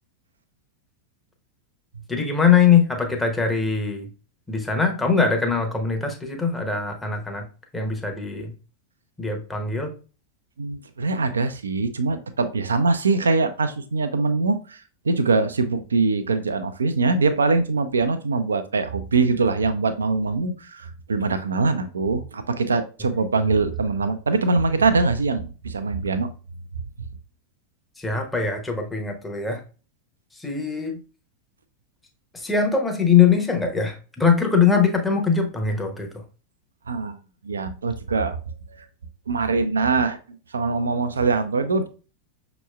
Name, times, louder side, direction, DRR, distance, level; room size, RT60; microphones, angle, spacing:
voice 1, 2.1-4.1 4.5-7.5 7.7-8.5 9.2-9.9 28.0-29.6 30.4-31.0 32.3-36.1, left 6 dB, 10° left, 0.9 m, -21 dB
voice 2, 10.6-26.3 36.9-38.4 38.7-38.9 39.3-40.2 40.5-41.9, right 3 dB, 70° right, 0.4 m, -23 dB
6.0 x 2.9 x 2.3 m
figure-of-eight pair, 90°, 0 cm